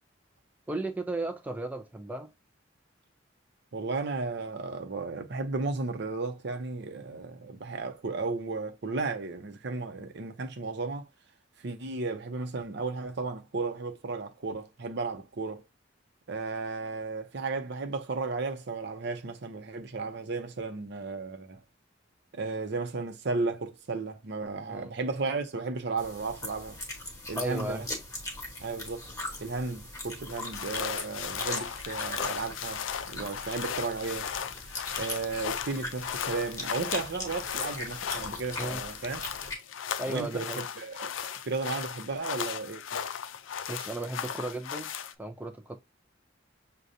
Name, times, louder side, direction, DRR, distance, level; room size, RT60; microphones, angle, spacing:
voice 1, 0.7-2.3 24.7-25.0 27.3-27.8 38.6-38.8 40.0-40.6 43.7-44.9 45.2-45.8, right 2 dB, 10° right, 0.4 m, -35 dB
voice 2, 3.7-11.1 11.6-15.6 16.3-21.6 22.3-26.8 27.3-27.9 28.6-29.1 29.4-34.3 35.0-39.2 40.1-41.2 41.4-43.0, right 3 dB, 60° right, 0.7 m, -34 dB
sound 1, 26.0-39.5, left 1 dB, 20° left, 1.2 m, -40 dB
sound 2, 30.3-45.1, left 8 dB, 80° left, 0.4 m, -36 dB
6.3 x 2.2 x 2.7 m
head